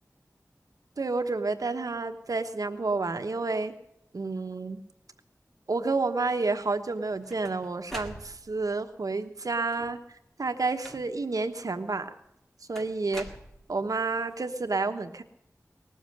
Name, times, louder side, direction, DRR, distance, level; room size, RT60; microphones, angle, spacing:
voice 1, 1.0-3.7 4.1-4.8 5.7-12.1 12.7-13.3 13.7-15.2, right 3 dB, 85° right, 8 dB, 1.2 m, -30 dB
sound 1, 6.9-8.7 9.6-10.1 10.8-11.4 12.8-14.0, equal, 5° left, 1.9 m, -45 dB
19.5 x 7.2 x 9.8 m, 0.78 s
wide cardioid pair, 65°, 6 cm